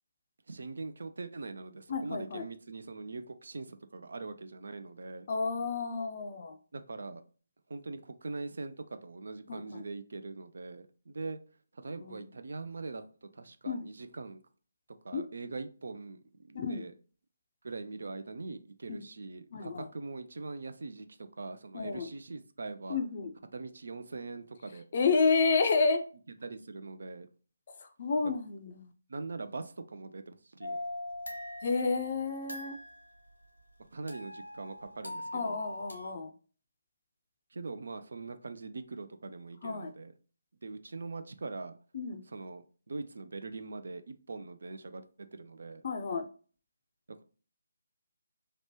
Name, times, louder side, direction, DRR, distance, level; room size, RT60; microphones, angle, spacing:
voice 1, 0.5-5.3 6.7-7.2 7.7-11.4 11.7-14.4 15.0-16.2 16.5-16.9 17.6-23.0 23.5-24.8 26.4-27.3 29.1-30.8 33.9-35.6 37.5-40.1 40.6-41.8 42.3-45.8 47.1-47.2, right 3 dB, 60° right, 9 dB, 0.3 m, -42 dB
voice 2, 1.9-2.4 5.3-6.6 9.5-9.8 12.0-12.2 13.7-13.9 15.1-15.2 16.5-16.8 18.9-19.0 19.5-19.9 21.7-22.1 22.9-23.3 24.9-26.0 27.8-28.9 31.6-32.8 35.3-36.3 39.6-39.9 41.9-42.2 45.8-46.2, left 4 dB, 45° left, 5 dB, 0.4 m, -30 dB
sound 1, 30.6-33.1 34.1-36.1, left 1 dB, 85° left, 1.2 m, -42 dB
2.9 x 2.2 x 2.9 m, 0.39 s
figure-of-eight pair, 150°, 0 cm